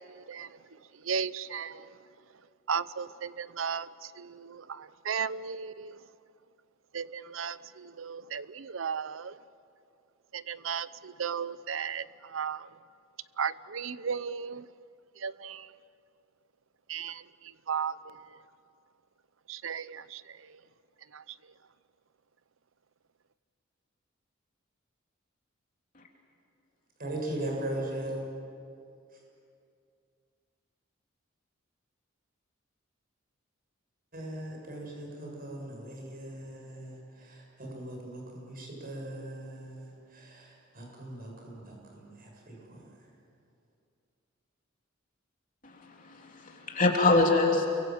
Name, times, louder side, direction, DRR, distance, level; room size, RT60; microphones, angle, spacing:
voice 1, 1.1-1.8 2.7-3.9 4.2-6.0 6.9-9.3 10.3-12.0 12.3-12.6 13.4-14.6 15.2-15.7 16.9-17.2 17.7-17.9 19.5-20.2 21.1-21.2, right 6 dB, 75° right, 0.7 m, -35 dB
voice 2, 27.0-28.2 34.1-42.8, right 1 dB, 50° right, 7.4 m, -39 dB
voice 3, 45.6-47.7, left 3 dB, 40° left, 3.3 m, -25 dB
29.5 x 23.5 x 7.8 m
head